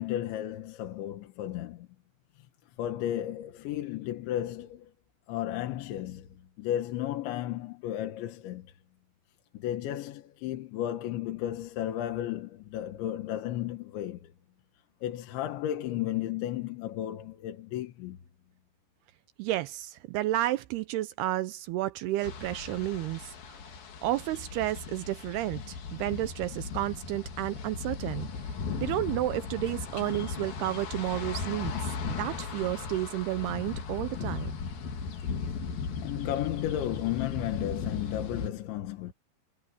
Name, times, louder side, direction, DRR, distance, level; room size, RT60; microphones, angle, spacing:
voice 1, 0.0-1.9 2.8-4.9 5.3-8.7 9.5-14.3 15.0-18.2 36.0-39.1, left 12 dB, 80° left, 3.8 m, -33 dB
voice 2, 19.4-23.7 24.0-28.3 28.8-31.7 32.1-34.5, right 15 dB, 85° right, 2.3 m, -31 dB
sound 1, 22.2-38.5, left 5 dB, 55° left, 4.2 m, -37 dB
omnidirectional pair, 5.3 m